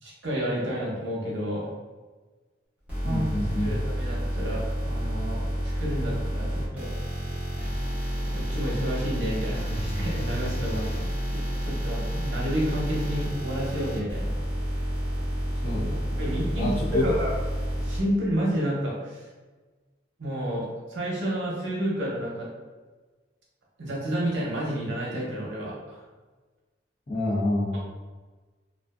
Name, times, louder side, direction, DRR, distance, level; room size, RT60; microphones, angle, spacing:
voice 1, 0.0-1.7 3.0-3.2 3.6-5.4 5.8-6.9 8.2-14.3 16.2-17.3 17.8-19.2 20.2-22.5 23.8-26.0, equal, 85° right, -4 dB, 0.7 m, -30 dB
sound 1, 2.9-18.0, equal, 10° right, 0.8 m, -30 dB
voice 2, 3.0-3.8 15.6-16.3 16.6-17.0 27.1-27.8, left 1 dB, 50° left, -7 dB, 0.8 m, -28 dB
2.5 x 2.3 x 2.3 m, 1.3 s
head